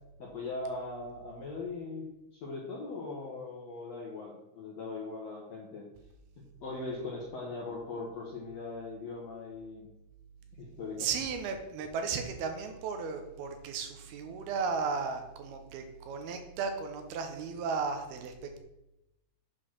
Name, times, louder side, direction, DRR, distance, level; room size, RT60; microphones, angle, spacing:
voice 1, 0.2-5.8 6.4-9.9 10.6-11.1, left 3 dB, 65° left, -4 dB, 1.6 m, -40 dB
voice 2, 11.0-18.6, right 5 dB, 75° right, 6 dB, 2.7 m, -35 dB
7.9 x 4.6 x 6.2 m, 0.90 s
omnidirectional pair, 4.7 m